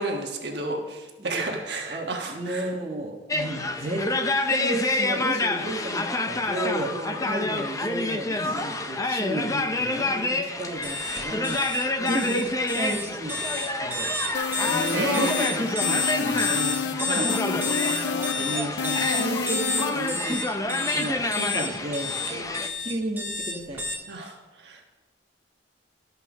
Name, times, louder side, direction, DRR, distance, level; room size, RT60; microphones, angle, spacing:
voice 1, 0.0-2.7 6.9-7.2 12.0-12.2 13.8-14.3 14.9-15.5 16.8-17.3 20.7-21.0 22.3-22.7 24.1-24.8, right 2 dB, 60° right, 1 dB, 1.4 m, -33 dB
voice 2, 1.9-4.1 4.5-12.5 12.7-13.4 13.8-14.1 14.6-22.1 22.6-23.8, right 1 dB, 35° right, -2 dB, 1.3 m, -33 dB
sound 1, 3.3-22.7, left 2 dB, 20° left, 0.6 m, -28 dB
sound 2, 10.8-23.9, left 3 dB, 10° right, 1.6 m, -30 dB
sound 3, 14.3-20.2, left 6 dB, 65° left, 0.4 m, -30 dB
13.0 x 5.5 x 6.2 m, 1.3 s
head